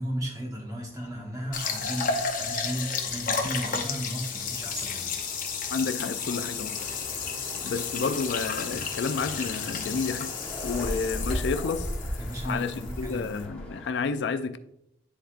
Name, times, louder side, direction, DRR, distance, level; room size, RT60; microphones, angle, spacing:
voice 1, 0.0-5.1 12.2-13.7, equal, 20° right, 1.3 m, -35 dB
sound 1, 0.6-13.9, equal, 5° left, 0.9 m, -40 dB
sound 2, 1.5-13.4, left 5 dB, 45° left, 0.8 m, -33 dB
voice 2, 5.7-6.8 7.6-10.3 10.6-11.9 12.4-14.6, left 5 dB, 75° left, 0.4 m, -30 dB
sound 3, 6.8-11.2, right 2 dB, 75° right, 2.2 m, -46 dB
9.9 x 4.0 x 2.5 m
head